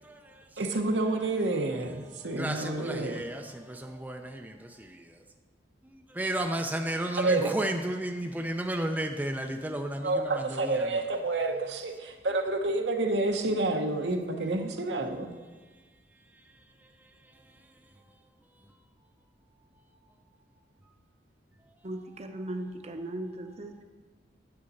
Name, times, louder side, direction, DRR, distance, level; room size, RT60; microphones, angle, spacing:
voice 1, 0.6-3.2 7.2-7.6 10.0-15.3, right 2 dB, 75° right, 1.0 m, -29 dB
voice 2, 2.4-4.5 4.8-4.9 6.2-10.8, right 1 dB, 10° right, 0.5 m, -32 dB
voice 3, 21.8-23.8, right 1 dB, 40° right, 0.8 m, -38 dB
9.6 x 7.8 x 4.1 m
head